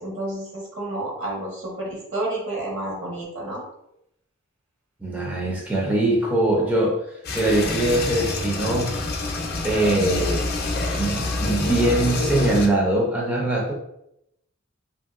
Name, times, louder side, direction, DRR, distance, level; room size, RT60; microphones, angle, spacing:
voice 1, 0.0-3.6, right 1 dB, 65° right, -3 dB, 1.1 m, -30 dB
voice 2, 5.0-7.0 7.3-8.9 9.6-10.5 10.9-13.7, right 1 dB, 10° right, -3 dB, 0.4 m, -22 dB
sound 1, 7.2-12.7, left 2 dB, 50° left, 0.5 m, -27 dB
3.0 x 2.7 x 2.4 m, 0.80 s
head